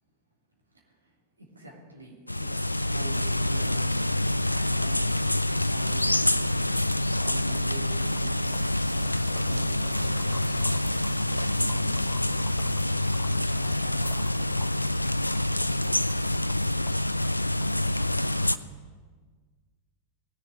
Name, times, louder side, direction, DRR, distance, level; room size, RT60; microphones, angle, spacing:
voice 1, 0.6-5.3 5.6-7.0 7.3-9.1 9.4-12.8 13.2-14.5, right 1 dB, 80° right, -2 dB, 3.3 m, -46 dB
sound 1, 2.3-18.6, left 1 dB, 85° left, 0.4 m, -26 dB
sound 2, 7.1-18.6, left 9 dB, 30° left, 0.9 m, -50 dB
19.0 x 7.2 x 8.8 m, 1.5 s
figure-of-eight pair, 90°, 0 cm